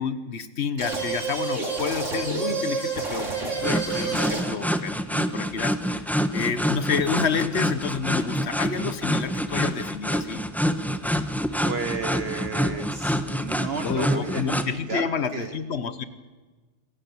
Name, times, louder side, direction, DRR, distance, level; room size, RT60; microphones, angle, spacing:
voice 1, 0.0-3.3 3.6-10.4 13.8-16.0, left 6 dB, 60° left, 13 dB, 1.4 m, -29 dB
sound 1, 0.8-4.7, right 4 dB, 80° right, 3.9 m, -29 dB
sound 2, 3.6-14.7, equal, ahead, 1.0 m, -27 dB
voice 2, 11.6-15.1 15.3-15.6, right 5 dB, 55° right, 8 dB, 1.3 m, -33 dB
27.0 x 17.0 x 7.1 m, 1.3 s
omnidirectional pair, 1.3 m